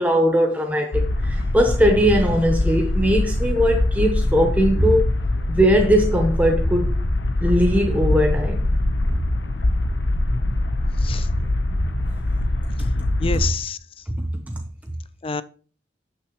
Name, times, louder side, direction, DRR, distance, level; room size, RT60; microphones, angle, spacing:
voice 1, 0.0-5.1 5.5-7.0 7.4-8.6 9.1-9.2 14.2-14.6, equal, 10° right, 0.8 m, -20 dB
sound 1, 0.9-13.5, left 1 dB, 75° left, 0.8 m, -23 dB
voice 2, 11.0-11.3 13.2-14.0 15.2-15.4, left 5 dB, 30° left, 0.5 m, -28 dB
11.0 x 6.4 x 3.0 m
head